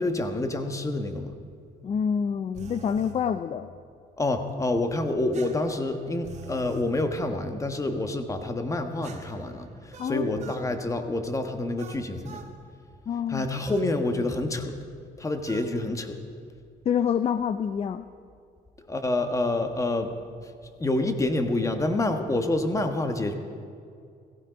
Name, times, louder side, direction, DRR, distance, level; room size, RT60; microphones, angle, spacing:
voice 1, 0.0-1.3 4.2-12.4 13.3-14.8 15.2-16.2 18.8-20.1 20.8-23.3, left 2 dB, 20° left, 7 dB, 1.4 m, -27 dB
voice 2, 1.8-3.7 10.0-10.3 13.1-13.4 16.9-18.1, left 7 dB, 35° left, 11 dB, 0.5 m, -27 dB
sound 1, 2.5-3.2 5.3-6.9 9.0-10.7 11.8-12.5 13.6-13.9 15.5-15.7, right 5 dB, 40° right, 1.7 m, -45 dB
17.0 x 15.5 x 5.2 m, 2.4 s
cardioid pair, 110°, 17 cm